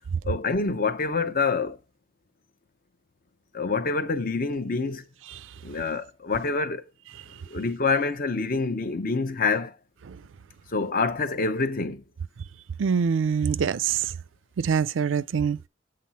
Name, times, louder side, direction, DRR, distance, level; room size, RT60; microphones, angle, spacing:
voice 1, 0.2-1.8 3.5-5.0 5.6-6.8 7.5-9.8 10.7-12.0, left 4 dB, 50° left, 0.7 m, -26 dB
voice 2, 12.8-14.1 14.6-15.7, right 6 dB, 85° right, 0.4 m, -24 dB
7.7 x 3.9 x 4.2 m
head